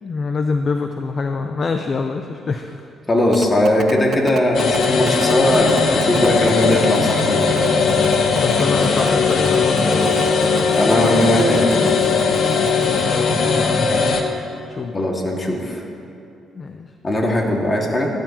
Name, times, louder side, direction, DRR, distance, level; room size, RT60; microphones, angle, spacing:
voice 1, 0.0-2.9 8.3-10.1 12.8-14.3 14.7-15.1 16.5-16.9, left 4 dB, 40° left, 5 dB, 0.6 m, -25 dB
voice 2, 3.1-7.6 10.7-11.9 14.9-15.8 17.0-18.1, left 1 dB, 25° left, -1 dB, 2.1 m, -19 dB
sound 1, 3.3-13.0, right 8 dB, 65° right, 0.5 m, -31 dB
sound 2, 4.5-14.2, left 5 dB, 65° left, 1.1 m, -18 dB
15.5 x 12.5 x 3.0 m, 2.7 s
cardioid pair, 90°, 0 cm